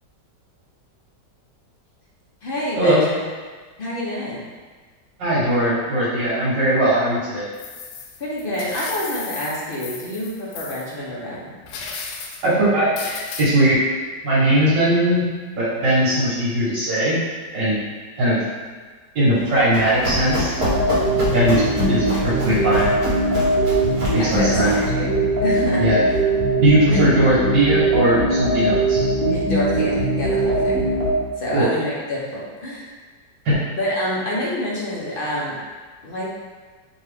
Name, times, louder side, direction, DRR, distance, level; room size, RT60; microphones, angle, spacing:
voice 1, 2.4-3.2 3.8-4.4 8.2-11.5 21.0-21.3 24.2-25.1 25.4-26.2 26.9-27.0 29.2-30.9 31.4-32.9 33.7-35.6 36.0-36.3, left 1 dB, 50° left, -5 dB, 0.7 m, -27 dB
voice 2, 5.2-7.5 12.4-13.8 14.2-15.2 15.6-17.2 17.5-17.8 18.2-18.4 19.2-20.5 21.3-22.9 24.1-24.7 25.8-26.0 26.6-29.0 31.5-31.7 33.5-33.6, right 1 dB, 75° right, -11 dB, 1.9 m, -19 dB
sound 1, 7.5-10.9 11.6-12.5 13.0-13.5, left 5 dB, 80° left, 1.2 m, -35 dB
Run, 19.4-24.9, equal, 25° right, 0.8 m, -27 dB
sound 2, 20.6-31.2, right 1 dB, 60° right, 1.5 m, -21 dB
5.2 x 2.7 x 3.4 m, 1.4 s
omnidirectional pair, 1.9 m